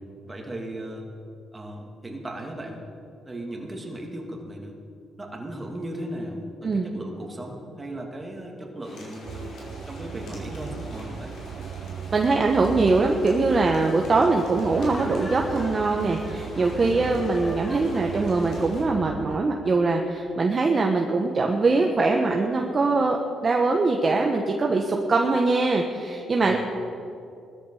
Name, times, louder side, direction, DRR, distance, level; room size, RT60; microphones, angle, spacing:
voice 1, 0.2-1.1 1.5-2.8 3.2-4.7 5.2-11.4 16.8-17.2 26.4-26.6, right 1 dB, 20° right, 0 dB, 2.8 m, -36 dB
sound 1, 8.8-18.8, left 2 dB, 75° left, 5.0 m, -46 dB
sound 2, 9.3-19.4, right 7 dB, 55° right, 0.6 m, -37 dB
voice 2, 12.1-26.6, right 3 dB, 35° right, 1 dB, 1.3 m, -22 dB
Laughter, 14.6-18.6, left 2 dB, 30° left, 2.0 m, -43 dB
19.5 x 13.5 x 5.0 m, 2.6 s
cardioid pair, 90°, 0 cm